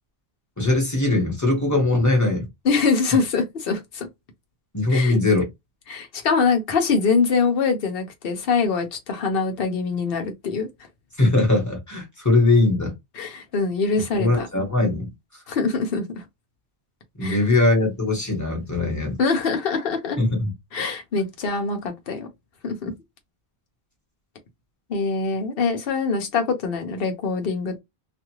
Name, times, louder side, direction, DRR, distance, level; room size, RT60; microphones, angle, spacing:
voice 1, 0.6-2.5 4.7-5.5 11.2-12.9 14.1-15.1 17.2-19.2 20.2-20.5, left 2 dB, 15° left, 1.2 m, -20 dB
voice 2, 2.6-4.1 4.9-5.2 5.9-10.7 13.2-14.5 15.5-16.2 17.2-17.4 19.2-20.2 20.7-22.3 22.6-22.9 24.9-27.8, left 4 dB, 60° left, 1.0 m, -24 dB
2.6 x 2.4 x 3.0 m
omnidirectional pair, 1.1 m